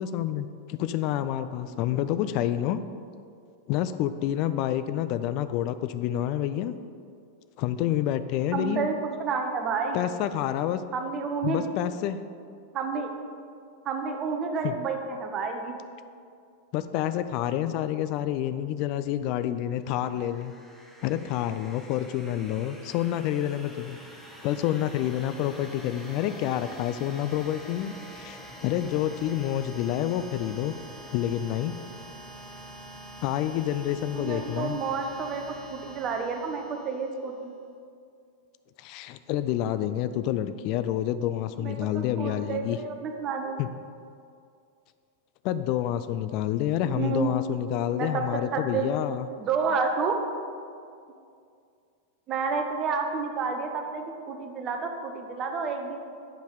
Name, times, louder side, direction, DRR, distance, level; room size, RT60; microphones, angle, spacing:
voice 1, 0.0-2.8 3.7-6.7 7.6-8.9 9.9-10.8 11.4-12.2 14.6-14.7 16.7-20.5 21.0-24.0 24.4-30.7 31.1-31.8 33.2-34.8 38.8-42.8 43.6-43.7 45.4-49.3, left 11 dB, 45° left, 12 dB, 0.4 m, -28 dB
voice 2, 8.5-10.2 10.9-11.7 12.7-13.1 13.8-15.7 34.1-35.4 35.7-37.5 41.6-43.6 46.9-47.5 47.9-48.2 48.5-48.8 49.4-50.2 52.3-56.0, right 5 dB, 30° right, 4 dB, 0.9 m, -30 dB
sound 1, 19.8-37.4, right 1 dB, ahead, 0.9 m, -46 dB
8.8 x 5.3 x 4.9 m, 2.3 s
figure-of-eight pair, 90°, 0 cm